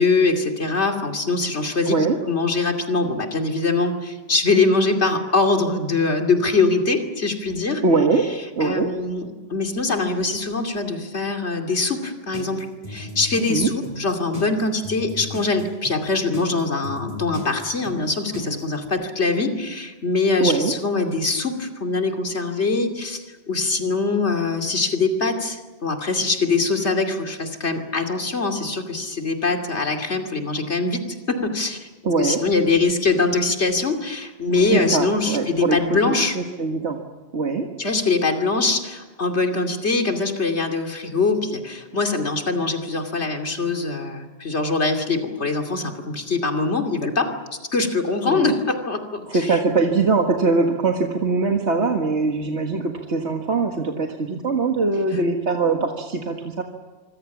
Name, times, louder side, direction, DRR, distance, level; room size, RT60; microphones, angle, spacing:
voice 1, 0.0-2.0 2.3-7.8 8.6-31.9 32.2-36.4 37.8-47.3 47.7-49.6, left 3 dB, 75° left, 3 dB, 2.9 m, -23 dB
voice 2, 1.9-2.2 7.8-8.3 8.6-8.9 13.5-13.7 20.4-20.7 32.0-32.4 34.7-37.0 37.3-37.7 48.2-48.5 49.2-56.6, right 3 dB, 75° right, 2 dB, 2.0 m, -22 dB
sound 1, 12.3-18.9, left 1 dB, 30° left, 6.9 m, -35 dB
25.5 x 24.5 x 7.3 m, 1.3 s
omnidirectional pair, 1.2 m